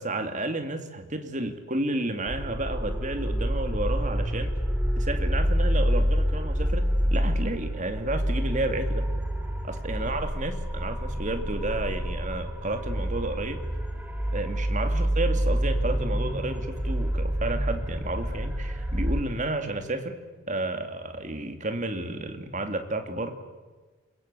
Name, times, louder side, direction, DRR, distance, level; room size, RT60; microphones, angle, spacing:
voice 1, 0.0-4.6 5.0-9.1 9.6-13.6 14.3-20.2 20.5-23.3, right 2 dB, 35° right, 7 dB, 2.4 m, -31 dB
sound 1, 2.3-19.2, equal, 5° right, 2.1 m, -27 dB
28.0 x 21.5 x 8.3 m, 1.3 s
head